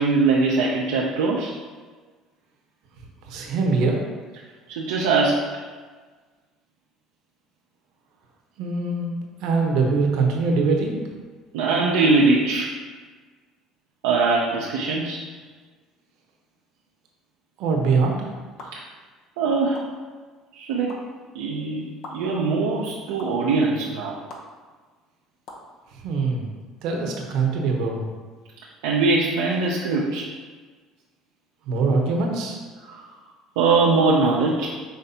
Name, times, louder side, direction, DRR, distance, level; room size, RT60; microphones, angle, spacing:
voice 1, 0.0-1.5 4.7-5.6 11.5-12.7 14.0-15.2 18.7-18.8 19.4-19.8 20.5-21.0 21.3-24.2 28.8-30.3 32.9-33.0 33.6-34.7, right 3 dB, 85° right, -3 dB, 0.4 m, -22 dB
voice 2, 3.2-4.1 8.6-10.9 17.6-18.3 25.9-26.5 26.8-28.0 31.7-32.6, right 4 dB, 70° right, 1 dB, 0.9 m, -23 dB
sound 1, 18.6-18.7 19.7-19.8 20.9-21.0 22.0-22.1 23.2-23.3 24.3-24.4 25.5-25.6, left 3 dB, 65° left, 0.8 m, -39 dB
5.6 x 3.2 x 2.8 m, 1.4 s
supercardioid pair, 80°, 0 cm